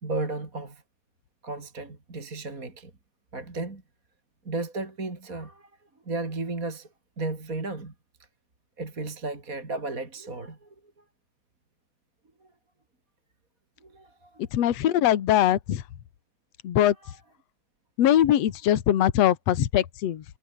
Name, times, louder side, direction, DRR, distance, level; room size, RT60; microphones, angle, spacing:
voice 1, 0.0-0.8 1.4-2.9 3.3-3.8 4.5-5.7 6.1-6.9 7.2-7.9 8.8-10.7 12.4-12.5 13.8-14.4 17.0-17.1, right 3 dB, 25° right, 3.7 m, -34 dB
voice 2, 14.5-15.8 16.6-17.0 18.0-20.2, left 11 dB, 55° left, 2.4 m, -22 dB
omnidirectional pair, 4.0 m